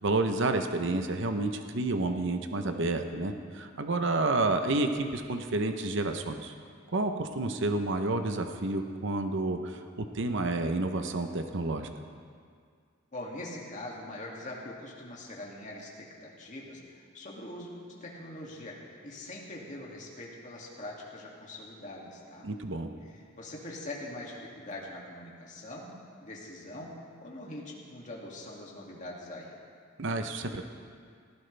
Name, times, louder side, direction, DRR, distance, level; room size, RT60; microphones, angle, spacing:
voice 1, 0.0-6.5 6.9-9.8 10.1-11.9 22.4-22.9 30.0-30.7, right 2 dB, 65° right, 6 dB, 0.8 m, -30 dB
voice 2, 13.1-18.7 19.0-22.5 23.0-25.9 26.2-26.9 27.2-29.5, left 1 dB, 40° left, -3 dB, 2.4 m, -43 dB
18.5 x 15.0 x 3.4 m, 2.1 s
head